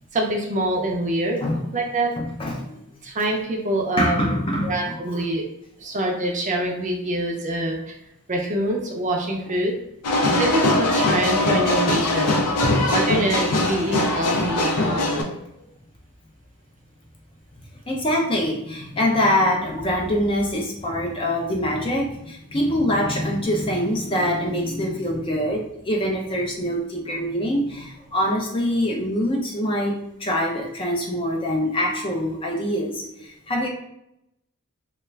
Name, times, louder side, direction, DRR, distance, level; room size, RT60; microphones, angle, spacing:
voice 1, 0.1-2.1 3.0-4.3 4.6-5.4 5.8-8.0 8.3-9.7 10.4-12.4 12.9-15.3, right 1 dB, 35° right, 1 dB, 0.5 m, -25 dB
voice 2, 2.2-2.8 4.0-5.5 12.6-12.9 17.8-33.7, equal, 25° left, 0 dB, 0.4 m, -24 dB
sound 1, 10.0-15.2, left 2 dB, 90° left, 0.5 m, -21 dB
2.4 x 2.2 x 3.1 m, 0.83 s
head